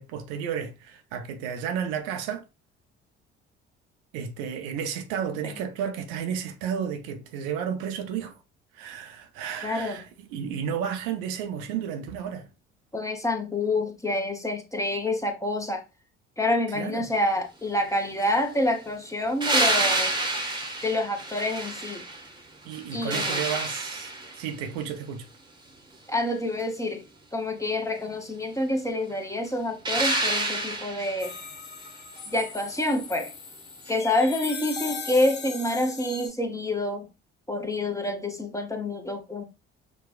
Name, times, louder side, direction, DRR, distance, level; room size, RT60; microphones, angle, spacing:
voice 1, 0.0-2.4 4.1-8.4 8.7-12.5 16.7-17.1 22.6-25.3, right 8 dB, 65° right, 0.6 m, -32 dB
voice 2, 9.6-10.0 12.9-15.8 16.4-20.1 20.8-22.0 22.9-23.4 26.1-27.0 27.3-31.3 32.3-33.3 33.9-37.1 37.5-39.4, left 1 dB, 10° left, 0.9 m, -27 dB
sound 1, 19.4-22.3 22.7-24.5 29.8-31.3 33.9-34.0, right 2 dB, 15° right, 1.1 m, -28 dB
sound 2, 31.2-36.3, left 5 dB, 30° left, 1.0 m, -38 dB
5.9 x 2.2 x 2.4 m
figure-of-eight pair, 50°, 34 cm